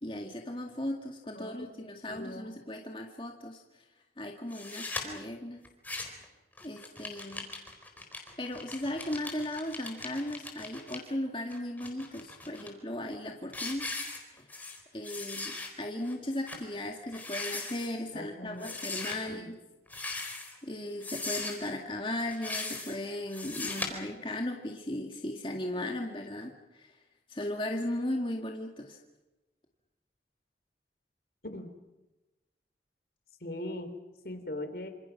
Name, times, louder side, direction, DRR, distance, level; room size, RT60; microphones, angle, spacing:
voice 1, 0.0-3.6 4.2-5.6 6.6-7.5 8.4-13.9 14.3-14.5 14.9-19.5 20.6-27.0 27.3-29.0, left 1 dB, 30° left, 2 dB, 2.1 m, -37 dB
voice 2, 2.1-2.5 18.1-18.8 19.3-19.5 31.5-31.7 33.4-33.9 34.2-34.9, left 1 dB, 60° left, 8 dB, 3.4 m, -40 dB
sound 1, 4.5-5.0 5.6-6.2 6.6-11.0 11.5-12.7 13.1-13.3 13.5-14.8 15.0-15.7 16.0-16.1 16.5-16.6 17.1-17.9 18.6-19.2 19.9-20.6 21.0-21.7 22.3-23.0 23.3-23.9, left 3 dB, 10° left, 4.2 m, -39 dB
27.5 x 27.0 x 6.0 m, 1.1 s
head